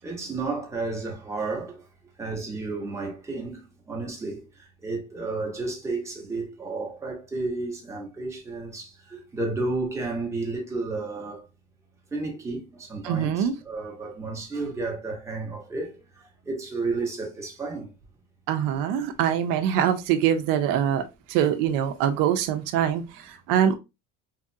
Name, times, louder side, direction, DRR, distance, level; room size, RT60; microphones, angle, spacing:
voice 1, 0.0-1.8 2.2-11.4 12.1-17.9, right 3 dB, 10° right, 0.8 m, -32 dB
voice 2, 13.0-13.5 18.5-21.0 21.3-23.8, right 9 dB, 75° right, 0.5 m, -24 dB
2.9 x 2.4 x 2.6 m
cardioid pair, 160°, 33 cm